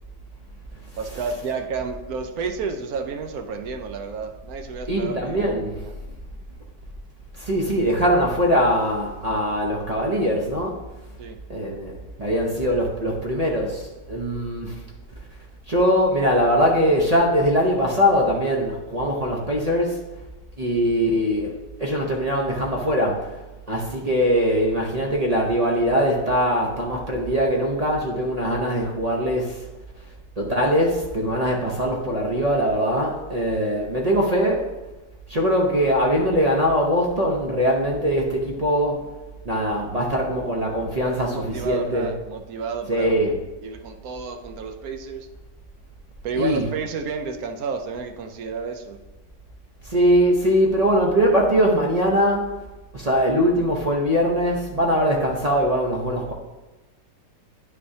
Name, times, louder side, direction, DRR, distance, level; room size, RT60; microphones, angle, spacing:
voice 1, 1.0-6.0 11.2-11.4 41.0-43.2 43.6-45.3 46.2-49.0, right 5 dB, 65° right, 6 dB, 1.0 m, -31 dB
voice 2, 4.9-5.7 7.4-10.7 11.5-11.9 12.2-14.7 15.7-20.0 20.6-21.5 21.8-23.2 23.7-29.6 30.4-34.6 35.3-39.0 39.5-42.1 42.9-43.3 46.3-46.7 49.9-52.5 52.9-56.3, equal, 45° right, -1 dB, 0.5 m, -21 dB
9.6 x 6.1 x 2.7 m, 1.1 s
omnidirectional pair, 1.9 m